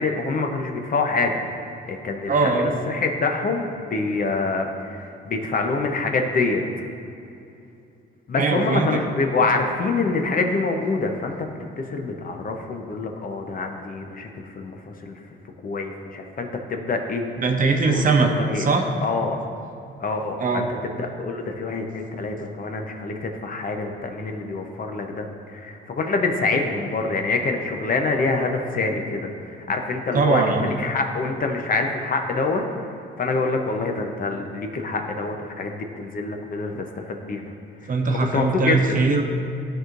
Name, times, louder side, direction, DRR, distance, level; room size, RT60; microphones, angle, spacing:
voice 1, 0.0-1.4 1.9-6.6 8.3-11.5 11.8-15.1 15.6-17.3 17.9-18.7 19.0-19.4 20.0-32.6 33.2-37.4 38.3-39.0, left 3 dB, 45° left, 3 dB, 0.8 m, -26 dB
voice 2, 2.3-2.7 8.4-9.0 17.4-18.9 20.4-20.7 30.1-30.7 37.9-39.2, right 3 dB, 45° right, 3 dB, 0.9 m, -21 dB
13.5 x 4.7 x 2.6 m, 2.7 s
cardioid pair, 90°, 20 cm